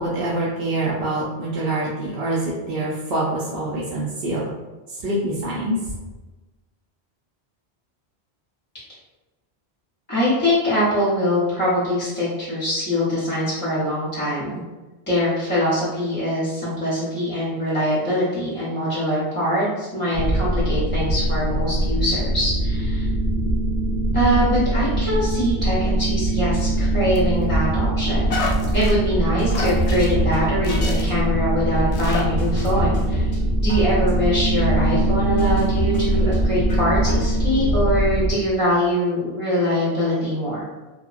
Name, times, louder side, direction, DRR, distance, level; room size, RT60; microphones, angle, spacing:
voice 1, 0.0-4.5 5.0-5.8, right 1 dB, 70° right, -6 dB, 0.8 m, -25 dB
voice 2, 10.1-14.6 15.1-23.1 24.1-28.4 28.7-33.3 33.6-40.6, equal, 15° left, -9 dB, 0.5 m, -23 dB
sound 1, 20.1-38.3, right 1 dB, 30° right, 0.6 m, -22 dB
sound 2, 27.1-27.6 28.3-28.9 29.5-30.1 30.6-31.2 31.7-32.2 32.6-32.7, left 4 dB, 90° left, 0.9 m, -30 dB
sound 3, 29.4-30.4 30.7-31.3 31.8-31.9 32.4-33.4 33.7-34.3 34.8-34.9 35.4-36.4 36.7-37.3 37.6-37.7, equal, 55° left, 0.7 m, -28 dB
2.9 x 2.0 x 2.4 m, 1.2 s
omnidirectional pair, 1.1 m